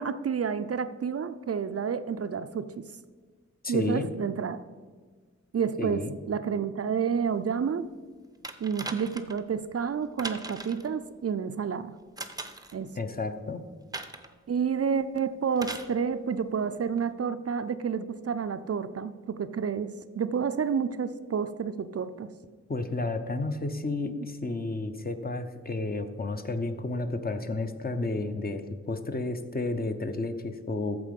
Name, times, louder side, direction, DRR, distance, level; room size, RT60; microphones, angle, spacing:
voice 1, 0.0-2.7 3.7-4.6 5.5-7.9 8.6-11.9 12.7-12.9 14.5-22.3 24.1-24.2, right 6 dB, 55° right, 11 dB, 0.5 m, -30 dB
voice 2, 3.6-4.1 5.8-6.2 12.9-13.6 22.7-31.0, left 2 dB, 30° left, 7 dB, 0.7 m, -31 dB
sound 1, 8.4-9.4 10.2-10.9 12.2-12.8 13.9-14.3 15.6-15.9 17.0-17.1, right 2 dB, 15° right, 0.6 m, -39 dB
13.5 x 4.8 x 5.2 m, 1.5 s
wide cardioid pair, 105°, 30 cm